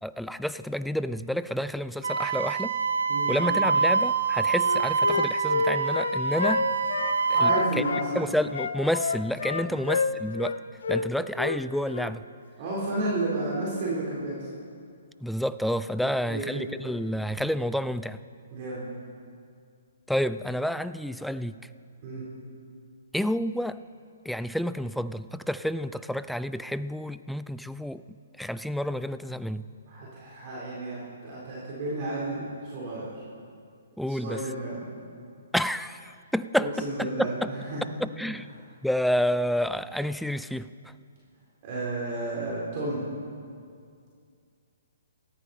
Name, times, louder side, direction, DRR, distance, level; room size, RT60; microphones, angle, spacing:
voice 1, 0.0-2.7 3.3-6.7 7.3-7.8 8.2-10.5 10.9-12.2 15.2-18.2 20.1-21.6 23.1-23.8 24.3-28.0 28.4-29.7 34.0-34.4 35.5-37.5 38.0-38.5 38.8-40.7, equal, ahead, 14 dB, 0.4 m, -29 dB
Wind instrument woodwind instrument, 2.0-7.7, right 5 dB, 75° right, 0.8 m, -25 dB
Wind instrument woodwind instrument 2, 4.6-8.1 8.5-10.6 10.8-11.0 11.3-11.6 11.9-12.1, left 4 dB, 70° left, 1.0 m, -28 dB
voice 2, 7.3-8.1 9.6-9.8 12.6-14.5 16.3-16.6 18.5-18.9 22.0-22.3 29.9-33.1 34.2-34.8 36.6-37.8 41.6-43.1, right 2 dB, 40° right, -6 dB, 4.2 m, -32 dB
18.0 x 14.0 x 4.4 m, 2.2 s
hypercardioid pair, 135°, 0 cm